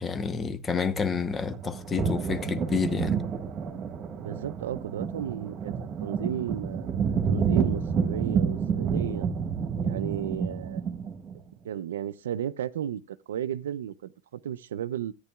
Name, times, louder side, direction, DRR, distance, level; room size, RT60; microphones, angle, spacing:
voice 1, 0.0-3.2, left 5 dB, 20° left, 0.9 m, -29 dB
sound 1, 0.9-11.4, right 6 dB, 35° right, 1.5 m, -29 dB
voice 2, 4.2-5.7 6.0-9.3 9.8-10.8 11.6-15.1, right 10 dB, 85° right, 0.5 m, -34 dB
13.5 x 9.7 x 2.3 m
hypercardioid pair, 115°, 0 cm